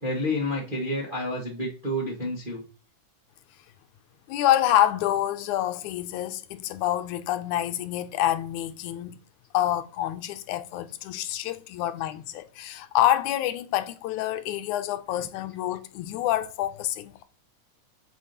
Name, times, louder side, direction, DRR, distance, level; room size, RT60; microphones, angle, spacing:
voice 1, 0.0-2.6 11.8-11.9 15.1-15.3, left 1 dB, 25° right, 1.0 m, -30 dB
voice 2, 4.3-9.2 9.5-17.2, left 12 dB, 80° left, 2.0 m, -27 dB
8.3 x 7.0 x 2.9 m
omnidirectional pair, 3.5 m